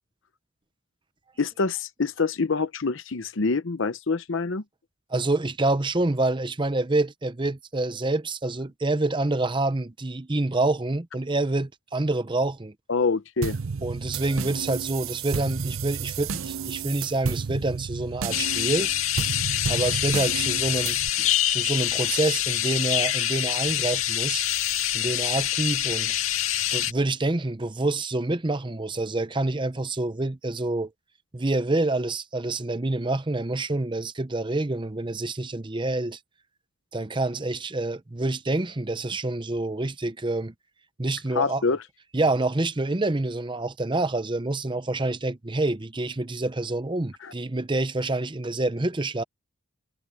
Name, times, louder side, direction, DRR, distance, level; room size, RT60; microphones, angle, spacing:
voice 1, 1.4-4.6 12.9-13.6 41.3-41.8 47.2-47.3, left 4 dB, 65° left, 0.8 m, -26 dB
voice 2, 5.1-12.7 13.8-18.9 19.7-24.4 24.9-26.2 26.7-30.9 31.3-36.2 36.9-40.5 41.0-41.6 42.1-49.2, right 2 dB, 25° right, 0.7 m, -27 dB
sound 1, 13.4-21.1, right 5 dB, 80° right, 0.7 m, -32 dB
sound 2, 18.3-26.9, left 12 dB, 85° left, 1.9 m, -25 dB
head